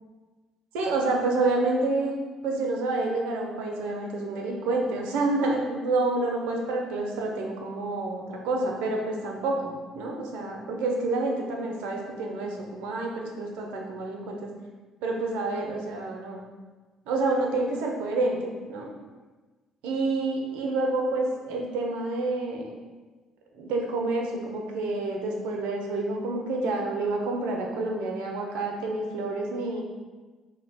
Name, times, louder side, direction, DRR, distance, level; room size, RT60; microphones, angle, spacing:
voice 1, 0.7-2.1 2.4-14.5 15.0-16.4 17.1-18.9 19.8-22.7 23.6-29.8, right 2 dB, 70° right, 0 dB, 0.5 m, -28 dB
2.7 x 2.1 x 4.0 m, 1.3 s
hypercardioid pair, 50°, 2 cm